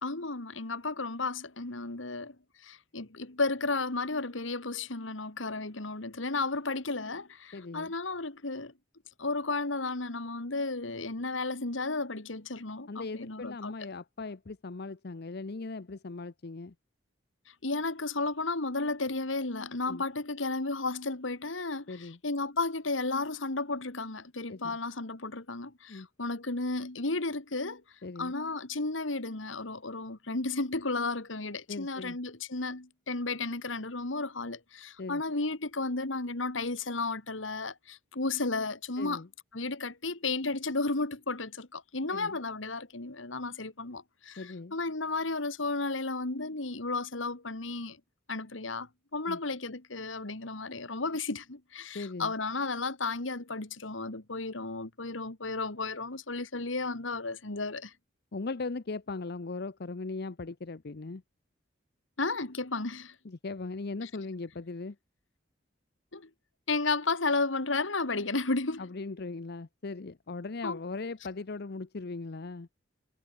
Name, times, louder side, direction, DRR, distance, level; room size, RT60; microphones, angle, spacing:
voice 1, 0.0-2.4 2.6-8.7 9.2-13.7 17.5-27.8 28.2-39.2 39.5-48.0 48.3-57.9 62.2-63.2 64.0-64.1 66.1-66.3 66.7-68.9 70.6-70.8, left 3 dB, 80° left, 2.3 m, -33 dB
voice 2, 7.5-7.9 12.9-16.7 19.9-20.0 21.9-22.2 24.5-24.6 25.9-26.1 28.0-28.3 31.7-32.2 35.0-35.2 39.0-39.3 42.1-42.4 44.4-44.7 49.3-49.4 51.9-52.3 58.3-61.2 63.2-65.0 68.8-72.7, left 3 dB, 55° left, 0.7 m, -39 dB
head